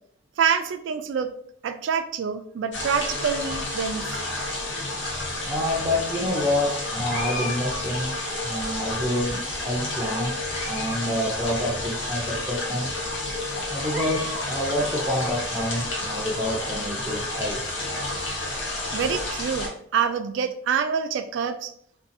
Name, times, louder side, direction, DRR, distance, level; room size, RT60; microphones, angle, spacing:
voice 1, 0.4-1.3 1.6-4.2 18.9-21.7, right 7 dB, 85° right, 9 dB, 0.3 m, -26 dB
sound 1, 2.7-19.7, left 2 dB, 85° left, 0.7 m, -30 dB
voice 2, 5.4-10.4 10.7-13.0 13.7-17.6, left 1 dB, 15° right, -5 dB, 0.4 m, -28 dB
sound 2, 7.0-8.5 9.1-9.8 10.3-11.0 11.3-11.4 12.1-12.2 12.6-12.7 13.7-14.5 14.9-15.9, left 1 dB, 60° left, 1.0 m, -37 dB
2.6 x 2.3 x 2.5 m, 0.64 s
head